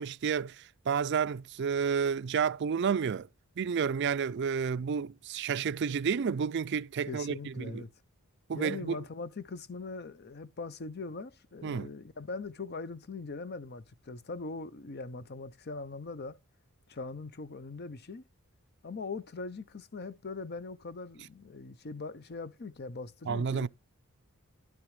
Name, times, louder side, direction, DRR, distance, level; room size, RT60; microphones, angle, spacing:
voice 1, 0.0-3.3 3.6-7.8 8.5-9.0 11.6-11.9 23.3-23.7, right 6 dB, 50° right, 0.4 m, -31 dB
voice 2, 7.1-7.9 8.5-16.4 16.9-18.2 18.8-23.7, left 3 dB, 45° left, 0.6 m, -41 dB
11.5 x 6.9 x 3.2 m
head